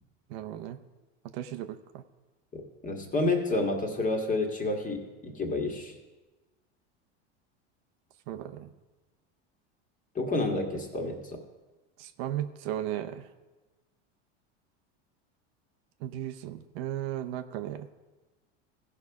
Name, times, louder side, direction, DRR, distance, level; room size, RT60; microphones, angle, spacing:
voice 1, 0.3-0.8 1.3-2.0 8.3-8.7 12.0-13.3 16.0-17.9, right 12 dB, 65° right, 8 dB, 0.8 m, -35 dB
voice 2, 2.5-6.0 10.1-11.4, left 2 dB, 25° left, 3 dB, 1.7 m, -30 dB
15.5 x 5.6 x 4.8 m, 1.1 s
supercardioid pair, 115°, 33 cm